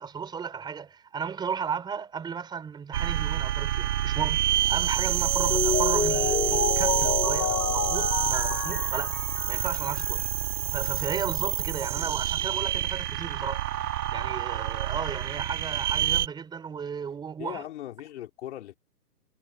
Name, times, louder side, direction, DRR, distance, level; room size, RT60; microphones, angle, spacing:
voice 1, 0.0-9.2 9.5-10.2 10.7-13.7 14.1-17.6, right 6 dB, 10° right, 5.0 m, -34 dB
sound 1, 2.9-16.3, right 12 dB, 70° right, 0.6 m, -28 dB
Mallet percussion, 5.2-10.2, left 8 dB, 80° left, 1.6 m, -29 dB
voice 2, 17.4-18.7, left 13 dB, 45° left, 4.3 m, -39 dB
hypercardioid pair, 155°, 48 cm